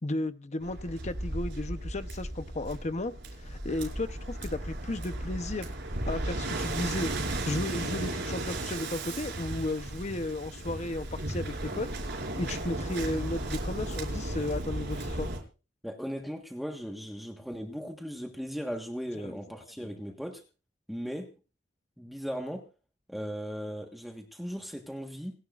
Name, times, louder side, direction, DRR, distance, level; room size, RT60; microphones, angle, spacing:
voice 1, 0.0-3.1 3.4-5.7 6.1-7.1 7.4-11.9 12.4-15.3 19.2-19.4 19.8-19.9, left 2 dB, 40° left, 11 dB, 0.9 m, -34 dB
Waves surf, 0.6-15.4, right 1 dB, 70° right, 5.2 m, -35 dB
voice 2, 15.8-20.4 20.9-21.3 22.0-22.6 23.1-25.3, equal, ahead, 2 dB, 1.4 m, -37 dB
27.5 x 11.0 x 2.5 m, 0.35 s
head